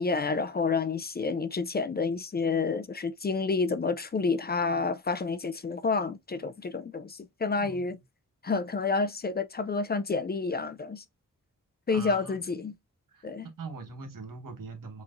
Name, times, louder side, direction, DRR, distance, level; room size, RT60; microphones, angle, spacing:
voice 1, 0.0-8.0 8.4-11.0 11.9-12.7 13.2-13.5, left 4 dB, 30° left, 0.4 m, -29 dB
voice 2, 7.6-8.0 11.9-12.4 13.1-15.0, right 4 dB, 85° right, 1.3 m, -42 dB
5.7 x 3.1 x 2.5 m
wide cardioid pair, 160°, 32 cm